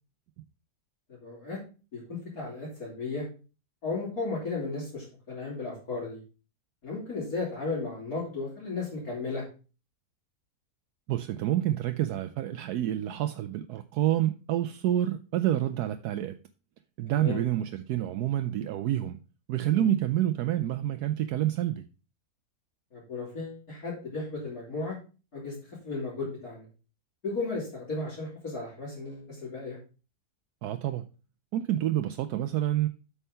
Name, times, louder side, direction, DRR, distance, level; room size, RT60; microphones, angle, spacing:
voice 1, 1.1-1.6 1.9-3.2 3.8-6.2 6.8-9.4 17.1-17.4 19.7-19.9 22.9-25.0 25.3-25.5 25.8-26.7 27.2-29.8, left 3 dB, 65° left, 4.1 m, -35 dB
voice 2, 11.1-16.4 17.0-19.2 19.5-21.8 30.6-31.0 31.5-32.9, right 12 dB, 75° right, 1.1 m, -28 dB
8.1 x 5.7 x 5.5 m
omnidirectional pair, 1.7 m